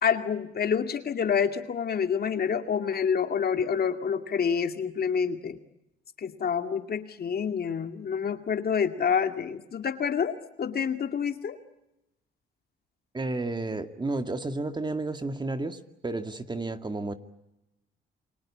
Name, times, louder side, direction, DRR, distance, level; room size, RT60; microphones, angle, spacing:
voice 1, 0.0-5.6 6.2-11.6, left 7 dB, 50° left, 7 dB, 2.3 m, -28 dB
voice 2, 13.1-17.1, right 2 dB, 20° right, 8 dB, 2.1 m, -32 dB
29.5 x 23.0 x 8.7 m, 0.90 s
cardioid pair, 90°, 20 cm